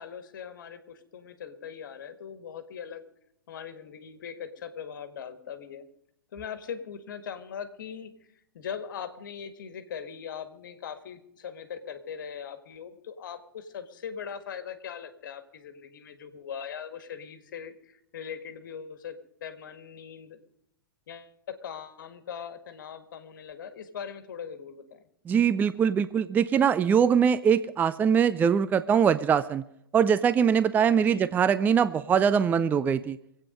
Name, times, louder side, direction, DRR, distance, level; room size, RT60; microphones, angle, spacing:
voice 1, 0.0-3.0 3.5-5.9 6.3-8.1 8.5-20.4 21.1-25.0 30.9-31.3, left 7 dB, 60° left, 10 dB, 1.8 m, -40 dB
voice 2, 25.3-29.6 29.9-33.2, right 7 dB, 15° right, 15 dB, 0.4 m, -22 dB
24.5 x 8.7 x 5.2 m, 0.76 s
figure-of-eight pair, 110°, 12 cm